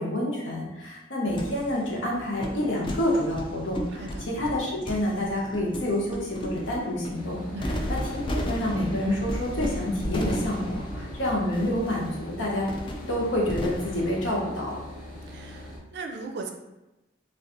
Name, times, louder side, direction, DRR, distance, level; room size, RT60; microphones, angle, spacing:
voice 1, 0.0-7.4 7.9-8.0 8.3-12.7 13.1-14.7, left 1 dB, 75° left, -3 dB, 0.9 m, -28 dB
sound 1, 1.3-14.3, equal, 25° left, 0.3 m, -35 dB
voice 2, 3.9-4.2 7.5-7.9 15.3-16.5, right 3 dB, 60° right, 3 dB, 0.4 m, -38 dB
sound 2, 7.1-15.8, left 1 dB, 50° left, 0.7 m, -42 dB
2.5 x 2.4 x 3.6 m, 1.0 s
head